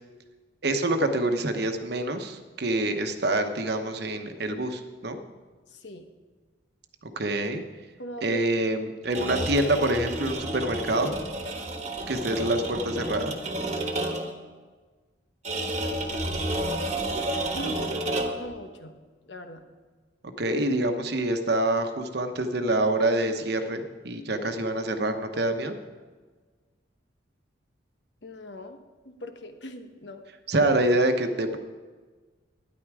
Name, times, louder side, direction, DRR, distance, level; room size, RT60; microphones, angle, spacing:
voice 1, 0.6-5.2 7.0-7.6 8.2-11.1 12.1-13.3 20.2-25.8 30.5-31.6, right 1 dB, 60° right, 7 dB, 1.0 m, -26 dB
voice 2, 5.7-6.1 8.0-8.5 9.1-9.3 15.7-16.9 17.5-19.0 19.3-19.6 28.2-28.8 29.0-30.2, equal, 70° left, 7 dB, 1.1 m, -41 dB
sound 1, 9.0-14.4 15.4-18.5, right 1 dB, 35° right, 1.3 m, -30 dB
12.5 x 10.5 x 4.9 m, 1.4 s
head